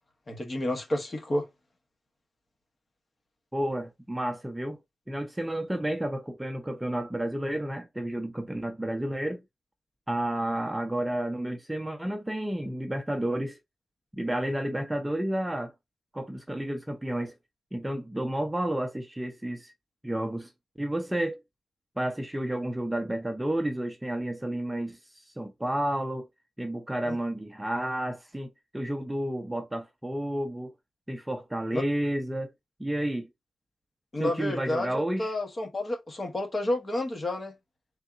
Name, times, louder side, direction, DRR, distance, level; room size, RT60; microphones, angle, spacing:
voice 1, 0.3-1.5 27.0-27.2 31.7-31.8 34.1-37.5, left 1 dB, 35° left, 1.2 m, -30 dB
voice 2, 3.5-4.8 5.1-9.4 10.1-13.6 14.2-15.7 16.1-17.3 17.7-19.7 20.0-20.5 20.8-21.4 22.0-26.3 26.6-30.7 31.1-32.5 32.8-33.3 34.2-35.3, right 1 dB, 10° right, 0.5 m, -31 dB
3.6 x 2.9 x 3.5 m
wide cardioid pair, 120°, 0 cm